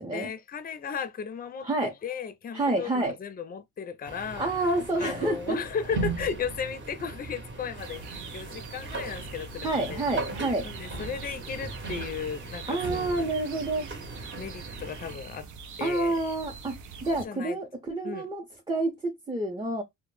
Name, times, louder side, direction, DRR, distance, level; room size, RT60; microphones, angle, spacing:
voice 1, 0.1-10.0 10.6-13.2 14.4-15.5 15.8-16.2 17.0-17.6 18.0-18.3, left 6 dB, 30° left, 0.4 m, -36 dB
voice 2, 2.5-3.2 4.4-5.6 9.6-10.7 12.7-13.9 15.8-19.8, right 2 dB, 15° right, 0.6 m, -28 dB
sound 1, 4.0-15.1, right 3 dB, 40° right, 0.9 m, -38 dB
sound 2, 7.8-17.3, right 5 dB, 70° right, 0.6 m, -43 dB
2.1 x 2.0 x 3.1 m
cardioid pair, 90°, 30 cm